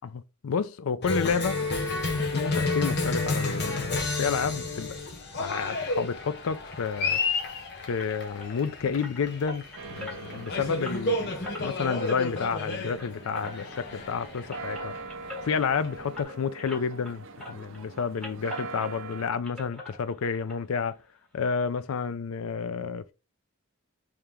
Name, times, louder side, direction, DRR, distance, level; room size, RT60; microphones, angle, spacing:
voice 1, 0.0-1.7 2.2-4.9 5.4-7.2 7.8-9.6 9.9-11.3 11.6-14.9 15.4-21.0 21.3-23.1, left 6 dB, 70° left, 0.4 m, -30 dB
Cheering, 1.0-16.2, left 2 dB, 55° left, 0.9 m, -31 dB
sound 1, 8.0-17.1 17.4-19.2 19.4-20.6 20.8-20.9 21.4-21.5 21.8-21.9, left 2 dB, 5° left, 1.5 m, -43 dB
sound 2, 9.8-19.3, right 3 dB, 60° right, 0.5 m, -43 dB
3.3 x 2.9 x 3.6 m
head